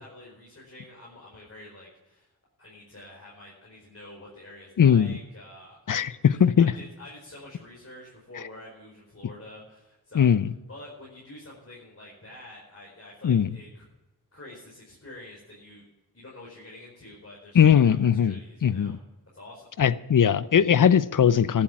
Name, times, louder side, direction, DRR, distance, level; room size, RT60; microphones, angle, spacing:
voice 1, 0.0-2.3 2.6-10.4 10.7-13.8 14.3-15.8 16.1-18.9 19.3-19.7, left 1 dB, 40° left, 4.7 m, -47 dB
voice 2, 4.8-5.1 5.9-6.7 10.1-10.5 13.2-13.5 17.5-18.4 18.6-19.0 19.8-21.6, left 8 dB, 55° left, 0.7 m, -19 dB
14.5 x 8.9 x 5.9 m
cardioid pair, 40°, 38 cm